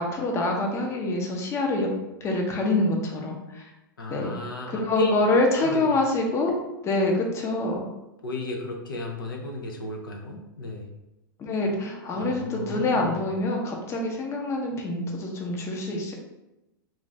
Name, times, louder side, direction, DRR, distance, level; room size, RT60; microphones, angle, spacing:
voice 1, 0.0-1.9 2.2-3.7 4.1-4.3 4.7-6.5 6.8-7.8 11.4-16.1, left 2 dB, 25° left, 1 dB, 0.6 m, -26 dB
voice 2, 4.0-5.1 5.6-5.8 8.2-10.9 12.1-13.2, left 1 dB, 80° left, 1 dB, 0.5 m, -33 dB
2.5 x 2.5 x 3.1 m, 0.95 s
hypercardioid pair, 105°, 11 cm